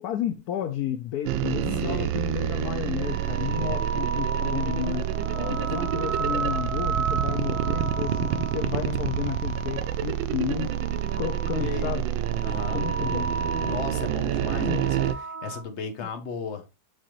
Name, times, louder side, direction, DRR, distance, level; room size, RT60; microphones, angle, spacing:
voice 1, 0.0-5.1 5.5-10.7 11.2-12.0 12.7-13.3 14.6-14.8 16.0-16.1, left 10 dB, 70° left, 0.9 m, -32 dB
sound 1, 1.3-15.1, right 11 dB, 85° right, 1.4 m, -28 dB
voice 2, 1.8-2.1 5.1-6.2 11.6-11.9 12.4-13.2 13.6-16.8, left 5 dB, 45° left, 1.1 m, -36 dB
sound 2, 3.0-10.1 10.6-11.9 12.2-15.6, right 4 dB, 60° right, 1.2 m, -34 dB
6.6 x 5.6 x 3.0 m
omnidirectional pair, 2.1 m